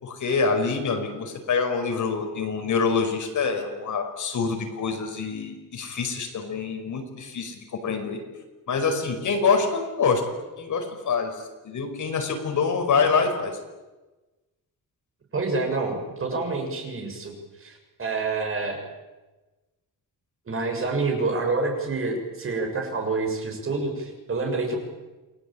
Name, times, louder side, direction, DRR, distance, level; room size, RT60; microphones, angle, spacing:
voice 1, 0.0-8.2 8.7-13.6, left 5 dB, 60° left, 4 dB, 5.4 m, -26 dB
voice 2, 15.3-17.3 17.6-18.8 20.5-24.8, right 3 dB, 40° right, 3 dB, 6.8 m, -27 dB
28.5 x 21.5 x 8.8 m, 1.1 s
wide cardioid pair, 155°, 34 cm